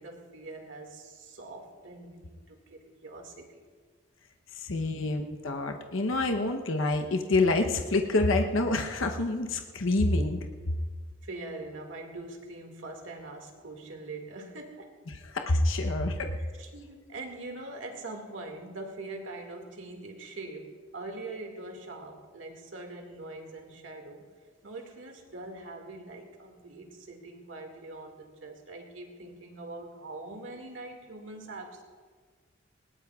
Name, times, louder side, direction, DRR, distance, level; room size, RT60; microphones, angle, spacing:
voice 1, 0.0-3.6 11.2-15.0 16.3-24.3 24.6-31.8, right 2 dB, 75° right, 3 dB, 2.1 m, -43 dB
voice 2, 4.5-10.4 15.3-16.3, left 2 dB, 90° left, 4 dB, 0.9 m, -27 dB
20.0 x 18.5 x 2.4 m, 1.6 s
head